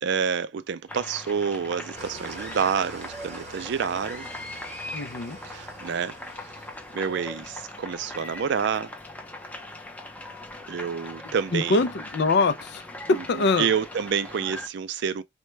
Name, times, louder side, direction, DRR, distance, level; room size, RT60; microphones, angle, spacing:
voice 1, 0.0-4.3 5.4-6.2 6.9-8.9 10.7-11.8 13.1-15.2, right 6 dB, 60° right, 0.4 m, -28 dB
sound 1, 0.9-14.7, left 2 dB, 10° left, 0.6 m, -40 dB
Engine starting / Idling, 2.0-7.4, right 4 dB, 35° right, 0.7 m, -45 dB
voice 2, 4.9-5.4 11.5-12.8 13.1-13.7, left 3 dB, 55° left, 0.4 m, -23 dB
4.2 x 2.2 x 3.2 m
head